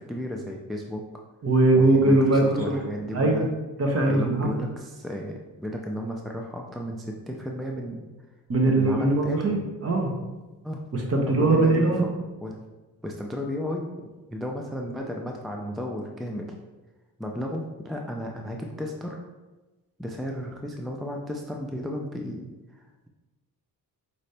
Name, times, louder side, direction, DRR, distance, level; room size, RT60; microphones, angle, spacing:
voice 1, 0.1-1.0 1.7-3.5 4.1-8.1 8.7-9.6 10.6-10.8 11.4-12.1 12.4-12.7 13.0-16.5 17.2-19.3 20.0-23.1, equal, ahead, 1 dB, 0.3 m, -34 dB
voice 2, 1.4-2.8 3.1-3.4 3.8-4.5 8.5-10.1 10.9-12.0, right 2 dB, 40° right, 0 dB, 1.0 m, -21 dB
5.0 x 2.7 x 3.3 m, 1.2 s
cardioid pair, 90°, 37 cm